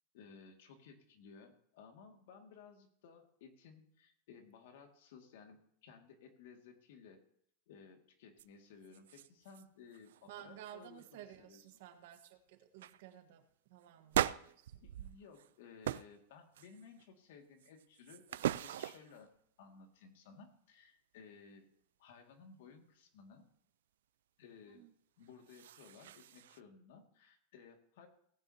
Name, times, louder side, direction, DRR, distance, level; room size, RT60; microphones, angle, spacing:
voice 1, 0.1-7.2 7.7-11.6 14.8-19.3 19.6-21.7 22.0-23.4 24.4-24.8 25.2-28.1, left 5 dB, 65° left, 4 dB, 2.2 m, -58 dB
sound 1, 8.4-8.5 8.8-9.6 9.9-10.3 10.6-11.1 11.7-11.8 12.1-12.3 12.8-13.0 14.1-15.5 15.8-16.2 16.5-17.0 17.6-19.2 25.2-26.6, right 12 dB, 80° right, 0.4 m, -40 dB
voice 2, 10.2-14.9 24.7-24.9, right 11 dB, 60° right, 8 dB, 1.4 m, -54 dB
18.0 x 9.5 x 2.9 m, 0.66 s
supercardioid pair, 155°, 0 cm